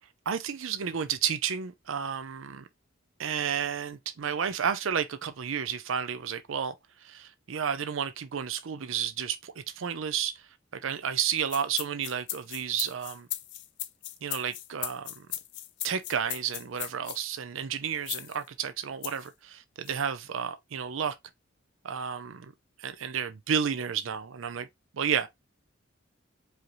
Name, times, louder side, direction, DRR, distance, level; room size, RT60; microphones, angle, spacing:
voice 1, 0.3-2.7 3.2-6.7 7.0-10.4 10.8-13.3 14.2-15.3 15.8-21.1 21.8-22.5 22.8-24.7 24.9-25.3, right 8 dB, 70° right, 0.5 m, -31 dB
sound 1, 11.4-17.2 18.1-18.4 19.0-19.3 19.9-20.0, left 14 dB, 60° left, 0.5 m, -37 dB
4.9 x 2.8 x 3.0 m
head